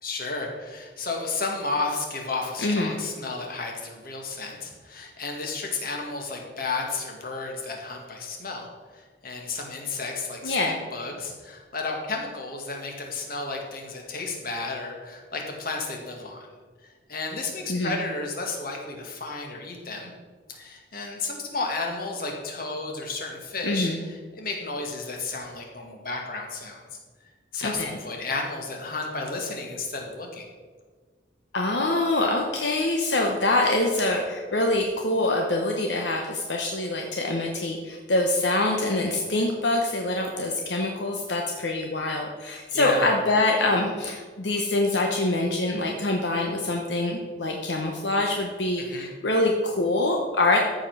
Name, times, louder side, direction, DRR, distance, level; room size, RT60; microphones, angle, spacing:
voice 1, 0.0-8.7 8.9-16.5 17.1-20.1 20.5-26.8 27.5-30.4 42.7-43.1 48.8-49.1, left 3 dB, 50° left, 1 dB, 2.0 m, -32 dB
voice 2, 2.6-3.0 10.4-10.7 17.7-18.0 23.6-24.0 27.6-28.0 31.5-50.6, left 2 dB, 75° left, 1 dB, 1.1 m, -25 dB
14.0 x 5.3 x 6.2 m, 1.5 s
head